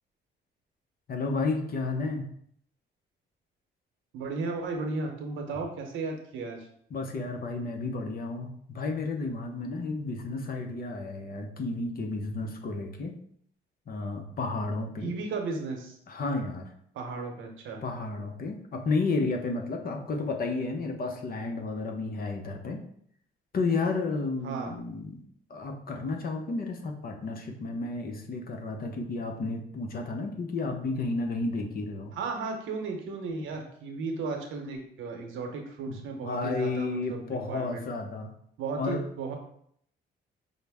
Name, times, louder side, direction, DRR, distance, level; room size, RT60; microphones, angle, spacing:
voice 1, 1.1-2.2 6.9-13.2 13.9-15.1 16.1-16.7 17.8-22.8 23.5-25.2 25.5-32.1 35.9-36.0 36.2-38.3 38.8-39.0, left 3 dB, 50° left, 3 dB, 0.7 m, -32 dB
voice 2, 4.1-6.7 15.0-16.0 16.9-17.8 24.4-24.7 32.1-37.8 38.6-39.4, right 4 dB, 80° right, 3 dB, 0.9 m, -35 dB
5.4 x 2.1 x 3.5 m, 0.66 s
cardioid pair, 90°, 20 cm